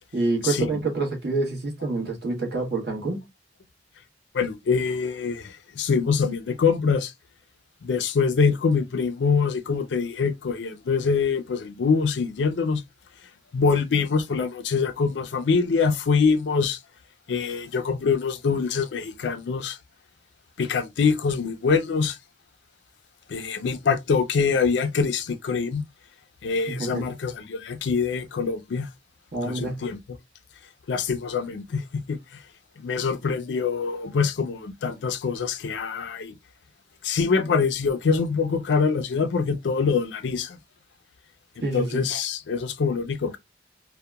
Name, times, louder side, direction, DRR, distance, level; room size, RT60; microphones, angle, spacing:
voice 1, 0.1-3.2 26.7-27.1 29.3-29.8 41.6-42.1, right 3 dB, 65° right, 1.1 m, -27 dB
voice 2, 4.3-7.1 7.8-12.8 13.5-16.8 17.3-19.8 20.6-22.2 23.3-25.8 26.4-28.9 29.4-30.0 30.9-31.8 32.1-32.2 32.8-36.3 37.0-40.6 41.7-43.4, left 5 dB, 70° left, 0.4 m, -24 dB
2.7 x 2.2 x 2.2 m
head